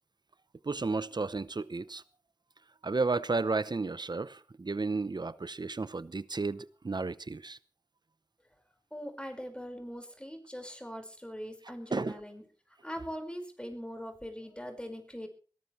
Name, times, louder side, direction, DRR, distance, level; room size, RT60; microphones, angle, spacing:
voice 1, 0.6-2.0 2.8-7.6 11.9-12.2, right 3 dB, 80° right, 0.7 m, -33 dB
voice 2, 8.9-12.4 12.8-15.3, equal, 15° left, 5.1 m, -41 dB
20.5 x 18.0 x 3.2 m
wide cardioid pair, 50°, 7 cm